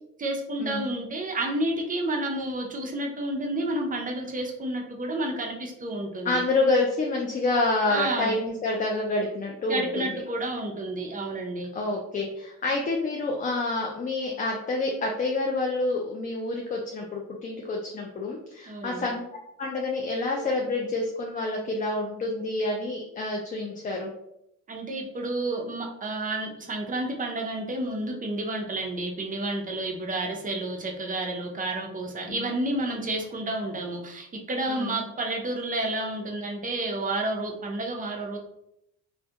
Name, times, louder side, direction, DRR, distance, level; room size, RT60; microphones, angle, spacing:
voice 1, 0.2-6.4 7.9-8.4 9.7-11.7 18.7-19.1 24.7-38.4, right 2 dB, 25° right, 1 dB, 0.5 m, -30 dB
voice 2, 6.2-10.2 11.7-19.2 19.6-24.1 32.3-32.5 34.7-35.0, left 2 dB, 25° left, 0 dB, 0.4 m, -28 dB
2.3 x 2.2 x 2.7 m, 0.81 s
cardioid pair, 90°, 30 cm